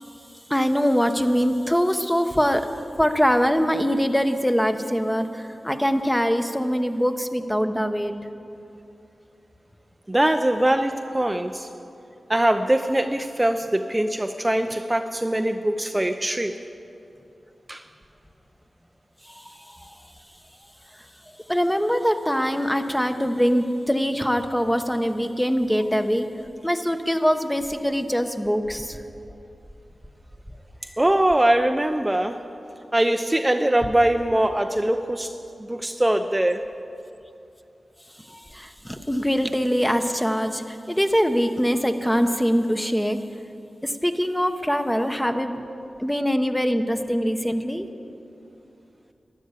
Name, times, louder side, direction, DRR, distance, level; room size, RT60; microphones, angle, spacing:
voice 1, 0.5-2.7 3.0-8.1 21.5-26.3 26.6-29.0 38.3-43.2 43.8-45.7 46.0-47.9, equal, 5° left, 7 dB, 1.1 m, -23 dB
voice 2, 10.1-11.7 12.3-16.6 17.7-17.9 31.0-32.4 32.9-35.3 35.6-36.7, right 1 dB, 20° right, 6 dB, 0.6 m, -22 dB
13.0 x 11.0 x 8.4 m, 2.7 s
cardioid pair, 50°, 0 cm